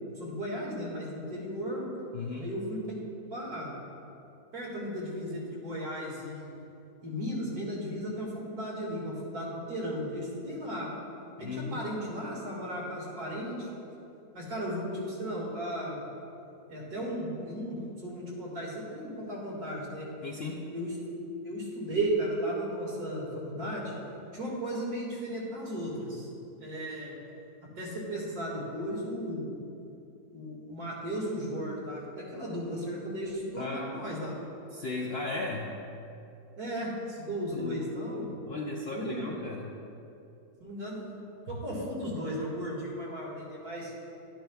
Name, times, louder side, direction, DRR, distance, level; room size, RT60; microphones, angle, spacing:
voice 1, 0.2-1.8 2.4-2.8 3.3-3.7 4.5-6.5 7.0-10.9 11.4-13.7 14.3-16.0 16.7-20.1 20.7-20.9 21.4-23.9 24.3-26.3 26.6-27.2 27.6-29.5 30.3-34.3 36.6-38.3 38.9-39.3 40.6-41.1 41.5-43.9, equal, 65° right, -4 dB, 2.5 m, -35 dB
voice 2, 2.1-2.5 11.4-11.9 20.2-20.7 33.6-34.1 34.7-35.7 37.5-37.8 38.5-39.7, left 3 dB, 55° left, -2 dB, 0.7 m, -36 dB
11.5 x 10.0 x 2.3 m, 2.7 s
omnidirectional pair, 1.7 m